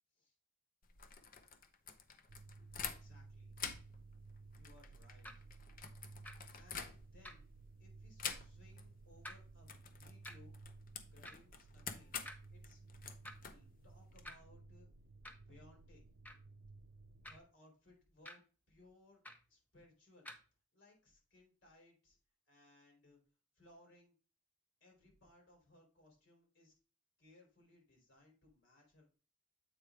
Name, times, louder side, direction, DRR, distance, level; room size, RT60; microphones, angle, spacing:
sound 1, 0.8-3.3 3.5-7.4 8.2-8.9 9.1-9.3 9.6-14.2, left 6 dB, 45° left, 0.7 m, -48 dB
sound 2, 2.3-17.4, right 3 dB, 60° right, 0.4 m, -57 dB
voice 1, 2.8-3.6 4.5-5.5 6.5-7.5 7.8-10.5 11.1-12.2 12.5-12.8 13.5-14.9 15.4-16.1 17.3-19.2 19.5-20.3 20.7-22.2 22.5-23.2 23.6-24.1 24.8-26.7 27.2-29.2, left 1 dB, 65° left, 0 dB, 3.5 m, -65 dB
sound 3, 5.2-5.4 6.2-6.4 7.2-7.5 8.2-8.4 9.2-9.4 10.2-10.4 11.2-11.4 12.2-12.4 13.2-13.5 14.2-14.4 15.2-15.5 16.2-16.5 17.2-17.5 18.2-18.4 19.2-19.5 20.2-20.4, left 1 dB, 10° left, 0.7 m, -51 dB
7.9 x 4.9 x 3.5 m, 0.35 s
head